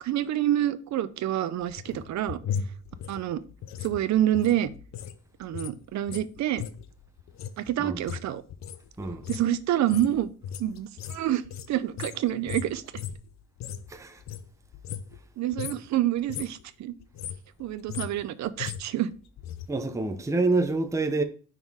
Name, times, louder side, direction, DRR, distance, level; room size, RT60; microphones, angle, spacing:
voice 1, 0.0-2.4 3.1-3.4 3.8-4.7 5.4-6.6 7.6-8.4 9.3-10.3 10.6-11.4 11.7-12.8 15.4-16.9 17.6-19.1, right 12 dB, 65° right, 0.6 m, -27 dB
sound 1, 1.6-5.2 5.4-13.9 14.2-15.3 15.5-15.9 16.2-16.6 17.0-19.7 19.9-20.0, left 8 dB, 65° left, 0.6 m, -38 dB
voice 2, 13.9-14.2 19.7-21.2, right 3 dB, 10° right, 0.6 m, -27 dB
5.3 x 3.8 x 4.7 m
cardioid pair, 90°, 30 cm